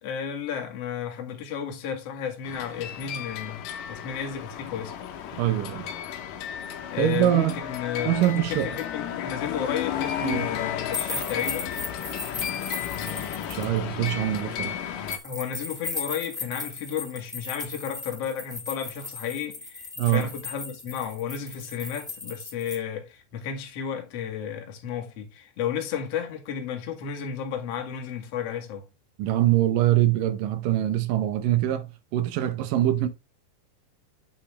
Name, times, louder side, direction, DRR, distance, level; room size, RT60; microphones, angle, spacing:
voice 1, 0.0-4.9 6.9-11.7 15.2-28.9, left 8 dB, 55° left, 2.0 m, -33 dB
sound 1, 2.4-15.2, left 9 dB, 70° left, 2.3 m, -33 dB
voice 2, 5.4-5.9 7.0-7.6 8.0-8.7 10.2-10.5 13.5-14.8 20.0-20.3 29.2-33.1, right 13 dB, 70° right, 2.2 m, -24 dB
sound 2, 10.9-13.6 15.1-22.8, left 4 dB, ahead, 1.1 m, -36 dB
8.6 x 5.5 x 3.2 m
omnidirectional pair, 4.5 m